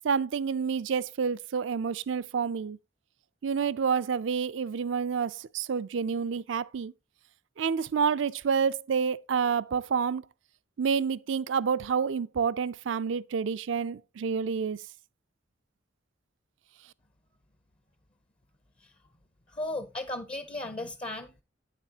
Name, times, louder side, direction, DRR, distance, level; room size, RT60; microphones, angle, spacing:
voice 1, 0.0-2.8 3.4-6.9 7.6-10.2 10.8-14.8, right 6 dB, 70° right, 0.4 m, -28 dB
voice 2, 19.5-21.4, left 2 dB, 30° left, 0.6 m, -36 dB
8.9 x 7.4 x 2.8 m
head